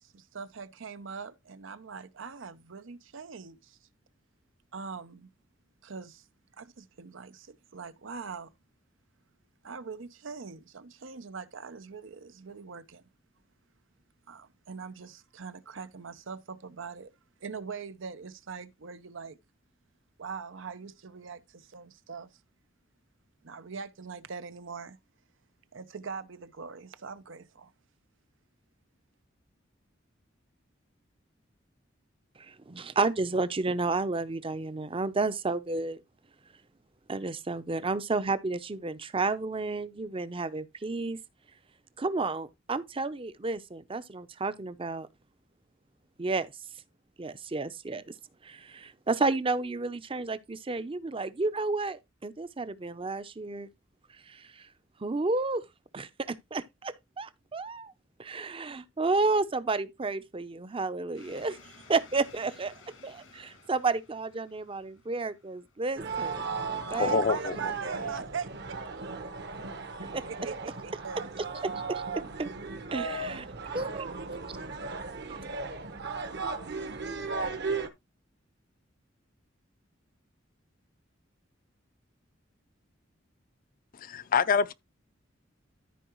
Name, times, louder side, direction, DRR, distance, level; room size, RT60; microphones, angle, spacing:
voice 1, 0.0-3.8 4.7-5.3 5.8-6.3 6.6-8.5 9.6-13.0 14.3-17.1 17.4-19.4 20.2-22.4 23.4-25.0 25.7-27.7 66.9-69.4 70.3-71.3, right 5 dB, 90° right, 0.8 m, -42 dB
voice 2, 32.5-36.0 37.1-41.2 42.0-45.1 46.2-46.5 47.2-48.0 48.4-53.7 54.3-54.4 55.0-55.6 55.9-57.9 58.2-61.6 61.9-62.7 63.0-67.2 70.1-70.2 71.6-72.0 72.4-72.5 72.9-73.5 73.7-74.2, right 3 dB, 30° right, 0.6 m, -31 dB
sound 1, 61.1-67.6, left 3 dB, 85° left, 1.9 m, -56 dB
sound 2, 66.0-77.9, right 4 dB, 60° right, 1.2 m, -36 dB
voice 3, 66.9-67.5 84.0-84.7, left 5 dB, 45° left, 0.5 m, -26 dB
13.5 x 4.7 x 3.0 m
head